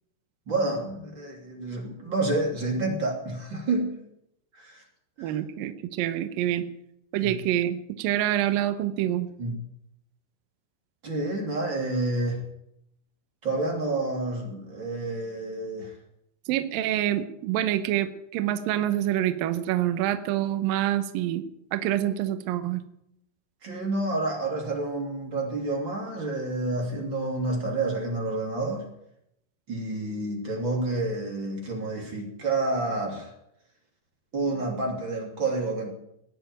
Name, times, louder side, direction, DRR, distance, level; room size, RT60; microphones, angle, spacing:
voice 1, 0.5-3.9 4.6-4.8 5.2-5.3 7.2-7.4 9.4-9.5 11.0-12.4 13.4-15.9 23.6-28.8 29.7-33.3 34.3-35.9, right 2 dB, 30° right, 0 dB, 2.9 m, -29 dB
voice 2, 5.2-6.6 7.1-9.3 16.5-21.4 21.7-22.8, right 12 dB, 80° right, 9 dB, 2.0 m, -26 dB
20.0 x 6.9 x 9.1 m, 0.79 s
omnidirectional pair, 5.4 m